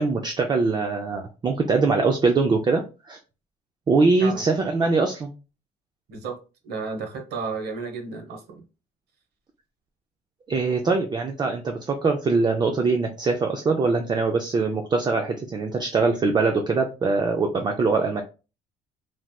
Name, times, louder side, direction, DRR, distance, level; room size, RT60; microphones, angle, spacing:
voice 1, 0.0-3.2 3.9-5.3 10.5-18.2, right 4 dB, 25° right, 3 dB, 0.4 m, -22 dB
voice 2, 6.6-8.6, right 4 dB, 80° right, 4 dB, 0.9 m, -32 dB
3.2 x 2.9 x 2.2 m, 0.31 s
cardioid pair, 110°, 17 cm